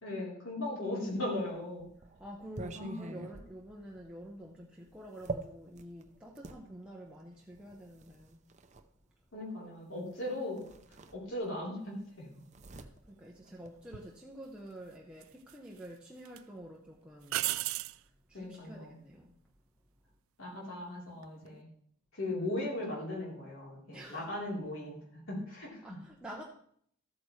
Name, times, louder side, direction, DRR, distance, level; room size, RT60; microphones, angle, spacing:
voice 1, 0.0-1.9 2.7-3.4 9.3-10.7 11.1-12.3 18.3-19.0 20.4-21.7 22.1-25.8, left 1 dB, 75° left, -4 dB, 3.8 m, -38 dB
sound 1, 1.3-6.6 7.5-8.9 10.1-10.2 10.5-11.7 11.9-14.2, right 3 dB, 35° right, 0.6 m, -45 dB
voice 2, 2.2-8.4 12.7-17.5 17.8-19.3 23.9-24.3 25.8-26.4, right 1 dB, 5° right, -3 dB, 0.8 m, -48 dB
sound 2, 13.9-14.1 15.2-15.9 16.2-16.4 17.3-18.0 21.1-21.5, right 16 dB, 90° right, 0.3 m, -34 dB
13.5 x 8.6 x 3.2 m, 0.66 s
head